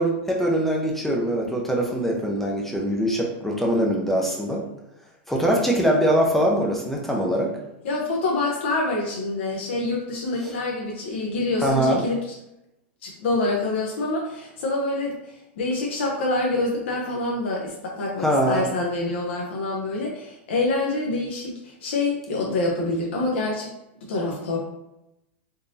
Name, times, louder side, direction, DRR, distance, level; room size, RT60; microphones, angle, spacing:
voice 1, 0.0-4.6 5.3-7.5 10.4-10.5 11.6-12.0 18.2-18.7, equal, 5° left, -2 dB, 0.5 m, -22 dB
voice 2, 7.8-12.2 13.0-15.1 15.6-23.7 24.1-24.6, left 2 dB, 70° left, -2 dB, 0.8 m, -26 dB
3.7 x 2.8 x 2.7 m, 0.88 s
hypercardioid pair, 130°, 6 cm